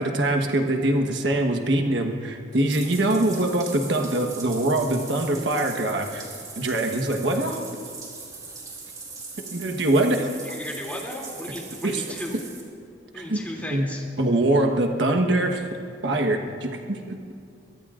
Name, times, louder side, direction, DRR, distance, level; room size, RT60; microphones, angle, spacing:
voice 1, 0.0-6.2 6.6-7.6 9.5-10.3 11.8-12.0 13.1-13.4 13.7-13.9 14.2-15.6 16.0-17.2, right 1 dB, 85° right, 3 dB, 1.3 m, -23 dB
Bathtub (filling or washing), 2.5-12.6, right 4 dB, 20° right, 3.0 m, -40 dB
voice 2, 10.4-12.4 13.1-14.0, left 1 dB, 10° left, -2 dB, 2.8 m, -35 dB
24.0 x 22.5 x 2.5 m, 2.4 s
head